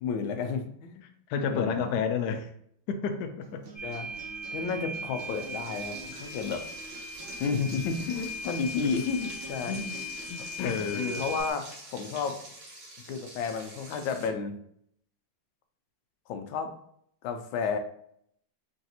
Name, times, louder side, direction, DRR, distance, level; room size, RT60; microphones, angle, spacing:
voice 1, 0.0-1.1 1.5-1.9 3.8-4.1 4.5-6.6 7.4-9.8 10.4-12.4 13.1-14.5 16.3-16.8 17.2-17.8, left 5 dB, 90° left, 7 dB, 1.4 m, -32 dB
voice 2, 1.3-2.5 2.9-3.6 8.8-8.9 9.6-10.0 10.3-11.2, left 6 dB, 70° left, 6 dB, 1.1 m, -31 dB
Acoustic guitar, 3.4-11.4, right 3 dB, 80° right, 1.8 m, -48 dB
sound 1, 3.8-11.5, equal, 30° left, 0.6 m, -39 dB
Frying (food), 5.2-14.3, right 1 dB, 45° right, 1.2 m, -47 dB
4.0 x 3.5 x 2.8 m, 0.69 s
omnidirectional pair, 2.1 m